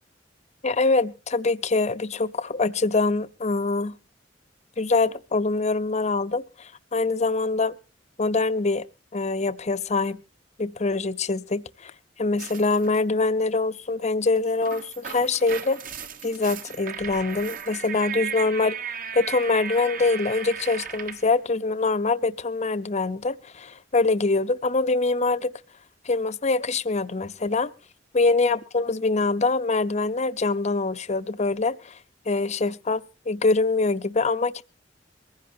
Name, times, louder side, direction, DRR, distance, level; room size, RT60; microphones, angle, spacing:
voice 1, 0.6-4.0 4.8-7.7 8.2-8.9 9.1-10.2 10.6-11.9 12.2-15.8 16.2-18.8 19.1-25.5 26.0-27.7 28.1-32.0 32.3-34.6, left 3 dB, 35° left, 0.7 m, -24 dB
sound 1, 12.4-13.0 14.4-21.3, right 7 dB, 50° right, 1.1 m, -36 dB
23.0 x 15.5 x 2.7 m
head